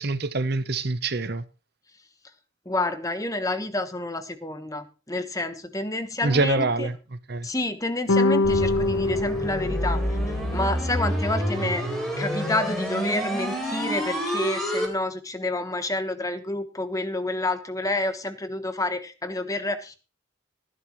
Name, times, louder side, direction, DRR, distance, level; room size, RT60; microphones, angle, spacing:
voice 1, 0.0-1.4 6.2-6.9 7.3-7.5, right 3 dB, 50° right, 0.8 m, -25 dB
voice 2, 2.6-6.9 7.4-10.0 10.3-11.8 12.2-19.9, left 2 dB, 15° left, 1.2 m, -29 dB
sound 1, 8.1-10.6, left 2 dB, 80° left, 1.1 m, -24 dB
sound 2, 8.4-14.9, equal, ahead, 4.2 m, -28 dB
18.0 x 11.0 x 3.1 m
head